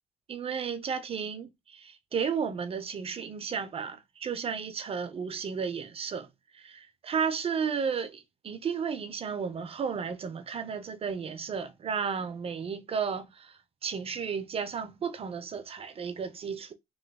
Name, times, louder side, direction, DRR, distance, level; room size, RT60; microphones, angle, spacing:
voice 1, 0.3-6.3 6.5-16.7, right 6 dB, 35° right, 0.4 m, -33 dB
2.9 x 2.2 x 3.3 m
cardioid pair, 110°, 17 cm